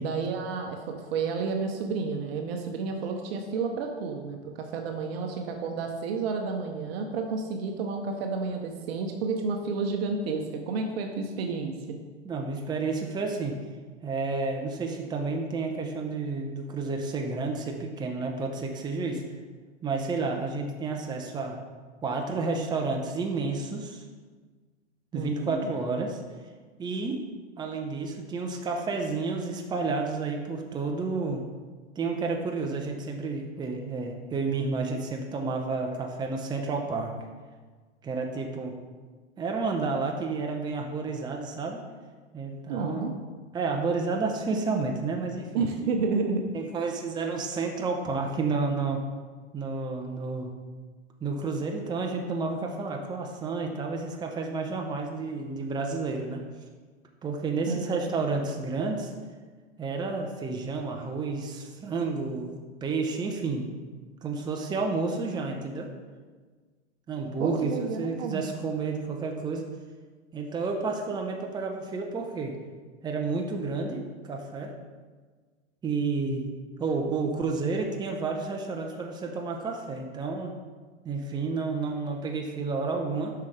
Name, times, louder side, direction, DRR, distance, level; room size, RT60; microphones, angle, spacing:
voice 1, 0.0-12.0 25.1-25.7 42.7-43.1 45.5-46.4 57.7-58.0 67.4-68.4, right 4 dB, 60° right, 3 dB, 0.8 m, -31 dB
voice 2, 12.2-13.5 14.0-19.2 19.8-21.6 22.0-24.0 25.1-26.2 26.8-27.2 27.6-31.4 32.0-37.1 38.0-38.7 39.4-41.8 42.3-43.1 43.5-45.9 46.5-49.0 49.5-50.5 51.2-56.4 57.2-59.1 59.8-63.7 64.2-65.9 67.1-69.7 70.3-72.5 73.0-74.7 75.8-76.4 76.8-80.5 81.0-83.3, right 4 dB, 10° right, 2 dB, 0.7 m, -30 dB
6.9 x 5.7 x 3.3 m, 1.4 s
hypercardioid pair, 110°, 35 cm